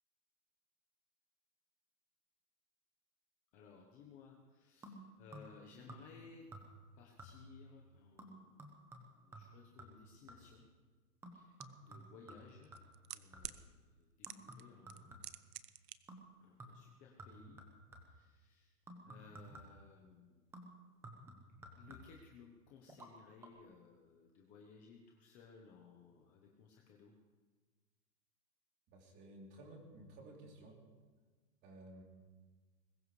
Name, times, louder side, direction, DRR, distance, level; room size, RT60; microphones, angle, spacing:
voice 1, 3.5-6.5 7.0-8.5 9.2-10.6 11.3-11.6 11.8-12.7 13.1-15.2 16.4-17.6 18.0-18.7 19.0-20.4 21.8-27.1, left 5 dB, 15° left, 0 dB, 1.0 m, -59 dB
sound 1, 4.8-5.6 5.9-6.3 6.5-6.9 7.2-7.6 8.2-10.6 11.2-13.7 14.3-15.5 16.1-16.3 16.6-18.3 18.9-19.9 20.5-22.3 22.9-23.1 23.4-23.5, right 1 dB, 5° right, 1.0 m, -55 dB
sound 2, 11.6-11.7 12.6-13.6 14.2-14.6 14.9-16.0 16.2-16.3, right 11 dB, 80° right, 1.1 m, -46 dB
voice 2, 28.9-30.8 31.6-32.0, right 1 dB, 20° right, -1 dB, 3.3 m, -55 dB
22.0 x 19.5 x 3.3 m, 1.4 s
hypercardioid pair, 165°, 47 cm